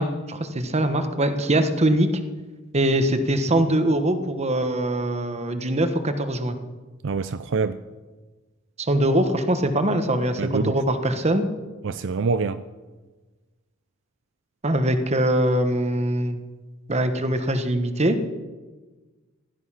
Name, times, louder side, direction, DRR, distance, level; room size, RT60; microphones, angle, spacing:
voice 1, 0.0-2.1 2.7-6.6 8.8-11.4 14.6-16.4 16.9-18.2, right 1 dB, 35° right, 8 dB, 1.2 m, -22 dB
voice 2, 7.0-7.8 10.4-10.7 11.8-12.6, right 4 dB, 65° right, 12 dB, 0.5 m, -25 dB
16.0 x 12.0 x 5.8 m, 1.3 s
head